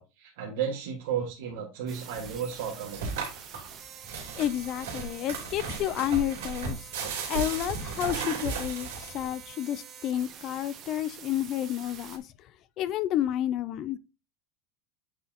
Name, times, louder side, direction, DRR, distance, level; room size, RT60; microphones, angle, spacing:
voice 1, 0.0-3.1, right 8 dB, 70° right, 1.8 m, -33 dB
sound 1, 1.9-12.2, right 8 dB, 35° right, 1.3 m, -47 dB
sound 2, 2.1-9.4, right 5 dB, 90° right, 2.9 m, -35 dB
voice 2, 4.4-6.9 7.3-12.2 12.8-14.0, left 12 dB, 40° left, 0.4 m, -30 dB
8.4 x 4.7 x 2.9 m
supercardioid pair, 145°, 0 cm